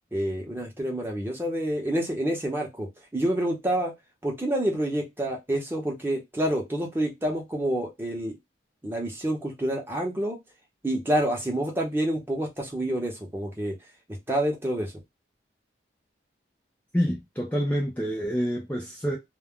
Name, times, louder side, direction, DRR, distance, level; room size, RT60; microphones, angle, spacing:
voice 1, 0.1-3.9 4.2-8.4 8.8-10.4 10.8-13.7 14.3-14.9, right 1 dB, 10° right, 0.7 m, -28 dB
voice 2, 16.9-19.2, equal, 10° left, 0.4 m, -27 dB
2.2 x 2.1 x 3.5 m
head